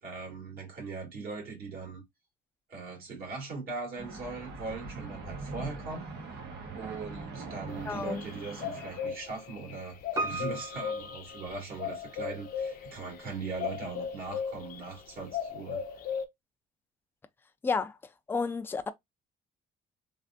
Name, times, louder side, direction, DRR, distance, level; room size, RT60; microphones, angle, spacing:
voice 1, 0.0-2.0 2.7-6.0 6.7-15.8, right 4 dB, 60° right, 1.9 m, -40 dB
sound 1, 4.0-9.1, right 3 dB, 90° right, 1.2 m, -42 dB
sound 2, 7.7-15.0 15.3-16.2, left 7 dB, 60° left, 0.6 m, -38 dB
voice 2, 7.9-8.2 17.6-18.0 18.3-18.9, left 4 dB, 15° left, 0.4 m, -31 dB
Piano, 10.2-12.2 12.5-12.6, right 1 dB, 20° right, 0.7 m, -37 dB
3.4 x 2.4 x 2.5 m
cardioid pair, 110°, 17 cm